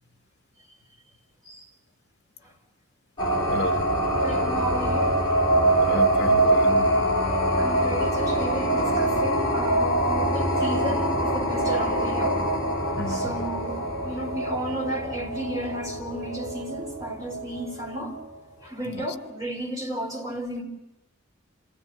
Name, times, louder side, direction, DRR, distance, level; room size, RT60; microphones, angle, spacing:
sound 1, 3.2-18.2, right 1 dB, 20° left, 4.3 m, -24 dB
voice 1, 3.5-3.9 5.8-6.9 13.0-13.3 18.9-19.0, left 2 dB, 55° left, 0.9 m, -32 dB
voice 2, 4.2-5.1 7.5-12.4 13.1-18.2 18.6-20.6, right 1 dB, 15° right, 5.2 m, -33 dB
28.5 x 15.5 x 7.3 m
head